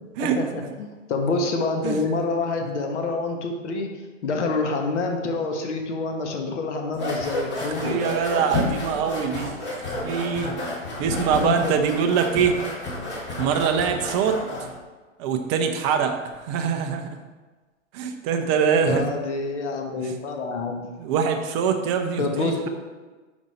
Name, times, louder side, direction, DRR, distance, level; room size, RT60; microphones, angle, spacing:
voice 1, 0.2-3.9 4.2-8.0 11.4-11.8 18.8-20.9 22.2-22.7, left 3 dB, 65° left, 3 dB, 1.2 m, -27 dB
sound 1, 6.9-14.8, left 2 dB, 30° left, 2.0 m, -30 dB
voice 2, 7.8-9.5 10.0-10.5 11.0-12.6 13.4-14.4 15.2-17.2 17.9-19.0 20.0-20.1 21.0-22.7, right 7 dB, 25° right, 5 dB, 0.5 m, -23 dB
5.3 x 5.1 x 4.1 m, 1.3 s
hypercardioid pair, 130°, 38 cm